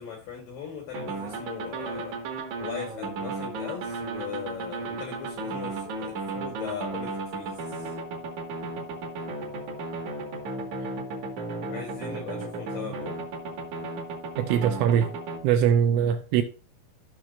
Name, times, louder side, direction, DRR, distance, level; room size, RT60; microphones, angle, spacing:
voice 1, 0.0-2.2 2.6-8.0 11.7-13.2, left 7 dB, 85° left, 1.9 m, -39 dB
sound 1, 0.9-15.4, right 3 dB, 70° right, 1.8 m, -34 dB
voice 2, 14.4-15.1 15.4-16.4, right 9 dB, 85° right, 2.7 m, -22 dB
14.5 x 6.1 x 2.5 m
omnidirectional pair, 6.0 m